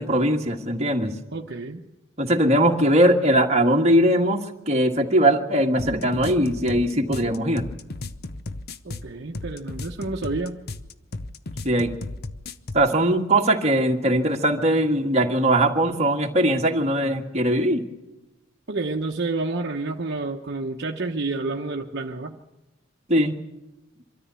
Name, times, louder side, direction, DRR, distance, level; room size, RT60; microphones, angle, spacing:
voice 1, 0.0-1.1 2.2-7.6 11.6-11.9 12.7-17.9 23.1-23.4, right 1 dB, 35° right, 2 dB, 1.7 m, -20 dB
voice 2, 1.3-1.9 8.8-10.6 14.0-14.2 18.7-22.4, right 3 dB, 55° right, 1 dB, 1.0 m, -29 dB
sound 1, 5.8-12.9, left 2 dB, 50° left, 0.8 m, -35 dB
24.0 x 13.5 x 8.3 m, 1.0 s
head